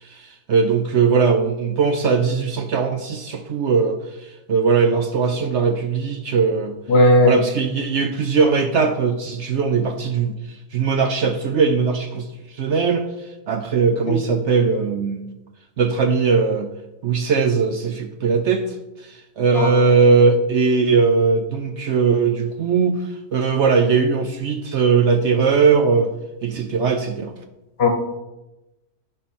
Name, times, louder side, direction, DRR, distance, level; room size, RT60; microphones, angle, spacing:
voice 1, 0.0-6.7 7.2-12.3 12.5-15.3 15.8-16.7 17.0-18.8 19.0-26.1 26.4-27.3, right 5 dB, 65° right, 6 dB, 0.7 m, -19 dB
voice 2, 6.9-7.3 14.0-14.2 19.6-19.7 27.8-27.9, left 1 dB, 45° left, 5 dB, 1.1 m, -15 dB
10.0 x 5.8 x 4.3 m, 1.0 s
omnidirectional pair, 1.7 m